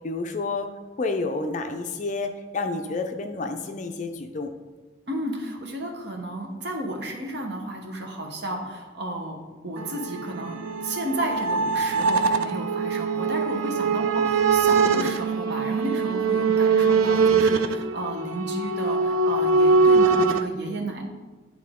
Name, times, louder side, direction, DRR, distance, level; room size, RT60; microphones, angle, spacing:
voice 1, 0.0-4.5 14.8-15.1 16.7-17.1, left 3 dB, 40° left, 5 dB, 0.5 m, -30 dB
voice 2, 5.1-9.4 9.6-21.1, right 1 dB, 55° right, 1 dB, 1.0 m, -32 dB
sound 1, 9.8-20.4, right 4 dB, 85° right, 0.4 m, -22 dB
9.9 x 3.7 x 3.6 m, 1.3 s
head